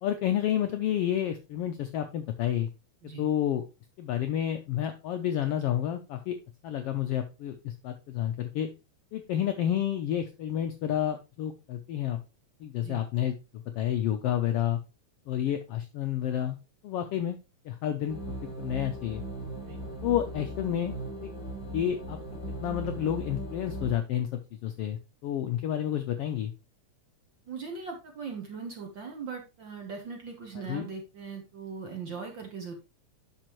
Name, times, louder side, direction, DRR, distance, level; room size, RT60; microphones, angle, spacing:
voice 1, 0.0-2.7 3.2-3.7 4.0-6.3 6.6-8.7 9.1-12.2 12.6-13.4 13.7-14.8 15.3-16.6 16.8-17.4 17.6-18.2 18.6-19.2 20.0-20.9 21.2-21.3 21.7-22.2 22.6-26.5 30.7-30.9, left 10 dB, 75° left, 6 dB, 1.3 m, -30 dB
sound 1, 18.1-23.9, right 1 dB, 40° left, 5.2 m, -38 dB
voice 2, 27.5-32.7, right 5 dB, 55° right, 2 dB, 1.4 m, -39 dB
8.9 x 6.1 x 3.0 m, 0.28 s
omnidirectional pair, 3.4 m